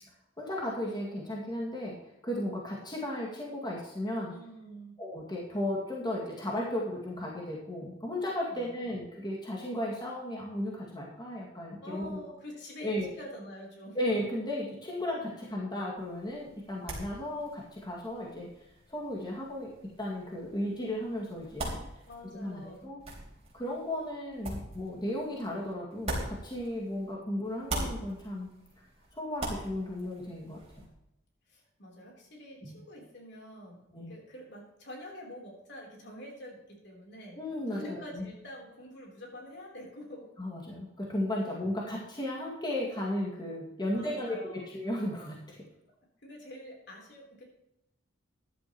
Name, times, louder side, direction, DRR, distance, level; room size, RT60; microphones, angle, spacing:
voice 1, 0.4-2.0 2.2-4.4 5.0-12.2 12.8-13.1 13.9-18.5 18.9-19.7 20.0-21.7 22.3-23.0 23.5-28.5 29.1-30.9 32.6-32.8 33.9-34.1 37.3-38.3 40.4-45.6, left 1 dB, 20° left, -3 dB, 2.2 m, -35 dB
voice 2, 4.2-5.0 8.5-9.0 11.8-14.0 22.1-22.9 31.5-37.4 37.7-40.3 43.9-44.6 46.2-47.4, equal, 60° left, 0 dB, 3.7 m, -46 dB
sound 1, 16.0-27.1 27.4-30.9, right 1 dB, 35° right, 3.8 m, -42 dB
14.5 x 11.5 x 3.1 m, 0.89 s
head